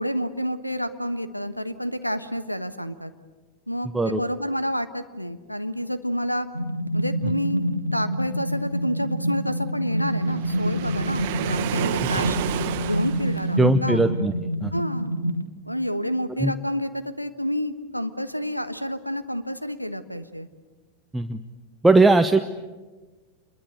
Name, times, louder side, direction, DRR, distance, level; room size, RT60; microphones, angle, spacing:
voice 1, 0.0-3.1 3.7-6.5 6.9-12.4 12.8-14.0 14.7-15.1 15.6-20.5, equal, 90° left, 12 dB, 1.2 m, -29 dB
sound 1, 6.5-15.5, equal, 90° right, 1.0 m, -27 dB
Waves surf, 10.2-13.7, right 10 dB, 50° right, 1.5 m, -30 dB
voice 2, 13.6-14.3 14.6-14.7 16.4-16.5 21.1-21.4 21.8-22.4, right 2 dB, 10° right, 8 dB, 0.9 m, -19 dB
27.5 x 22.0 x 8.2 m, 1.2 s
figure-of-eight pair, 90°, 0 cm